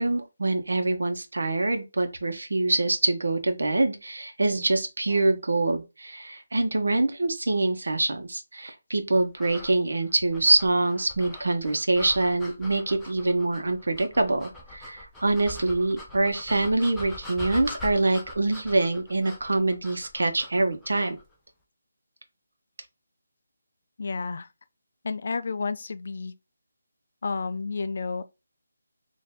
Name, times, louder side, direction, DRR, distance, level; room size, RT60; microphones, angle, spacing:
voice 1, 0.0-21.2, right 2 dB, 80° right, 1.0 m, -25 dB
sound 1, 9.3-21.2, left 2 dB, 5° left, 0.6 m, -43 dB
voice 2, 24.0-24.5 25.0-26.3 27.2-28.2, left 4 dB, 50° left, 0.4 m, -31 dB
4.5 x 2.7 x 3.5 m
hypercardioid pair, 175°, 0 cm